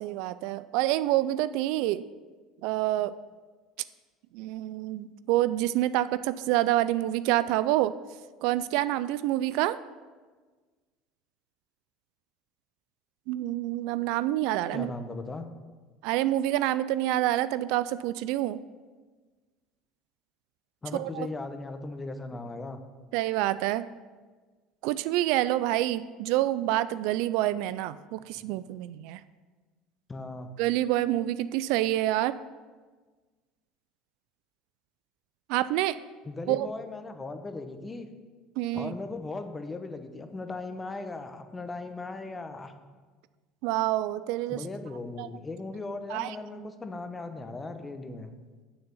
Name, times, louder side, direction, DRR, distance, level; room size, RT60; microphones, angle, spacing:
voice 1, 0.0-2.0 2.6-3.1 4.3-7.9 8.4-9.8 13.3-14.9 16.0-18.6 20.9-21.3 23.1-23.8 24.8-29.2 30.6-32.3 35.5-36.0 36.5-36.7 38.6-38.9 43.6-44.6 45.2-45.3 46.1-46.4, right 15 dB, 70° right, 15 dB, 0.3 m, -27 dB
voice 2, 14.7-15.5 20.8-22.8 28.3-28.5 30.1-30.5 36.2-38.1 38.7-42.7 44.5-48.3, left 3 dB, 20° left, 7 dB, 0.9 m, -38 dB
7.0 x 6.5 x 7.0 m, 1.4 s
supercardioid pair, 100°, 0 cm